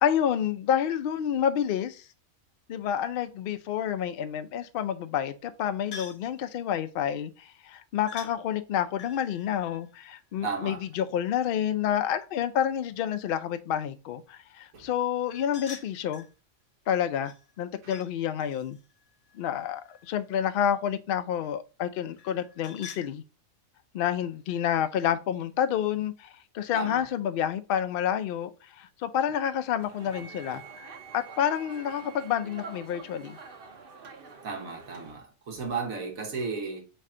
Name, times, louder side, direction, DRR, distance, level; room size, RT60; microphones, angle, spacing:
voice 1, 0.0-2.1 2.7-16.3 16.9-18.8 19.3-23.2 23.9-28.5 28.8-33.4, left 9 dB, 65° left, 0.5 m, -29 dB
sound 1, 5.9-6.3 8.1-8.3 9.0-10.8 15.3-16.3 17.2-18.1 18.4-20.3 22.2-23.1, left 5 dB, 85° left, 1.1 m, -47 dB
voice 2, 10.4-10.8 14.7-14.8 26.7-27.1 34.4-36.8, right 4 dB, 90° right, 1.5 m, -34 dB
sound 2, 29.8-35.1, right 4 dB, 50° right, 0.8 m, -47 dB
Wind instrument woodwind instrument, 30.1-33.7, right 10 dB, 30° right, 0.5 m, -51 dB
4.3 x 3.4 x 3.6 m
omnidirectional pair, 1.4 m